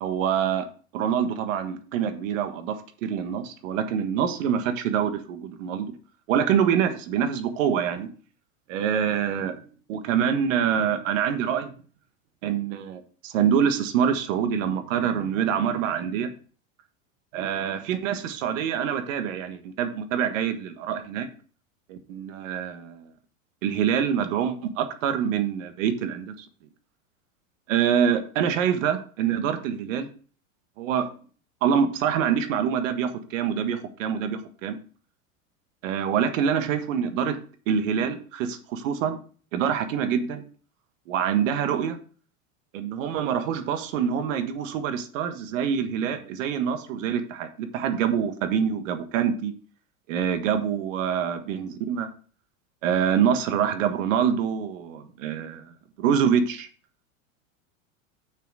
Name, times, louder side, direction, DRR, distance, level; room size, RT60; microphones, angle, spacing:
voice 1, 0.0-0.7 0.9-5.9 6.3-8.1 8.7-9.6 9.9-11.7 12.4-16.3 17.3-21.3 21.9-23.1 23.6-26.5 27.7-30.1 30.8-31.1 31.6-34.8 35.8-37.4 37.7-39.2 39.5-40.4 41.1-42.0 42.7-49.5 50.1-52.1 52.8-56.7, right 8 dB, 70° right, 8 dB, 1.5 m, -25 dB
6.7 x 6.3 x 4.8 m, 0.41 s
hypercardioid pair, 105°, 41 cm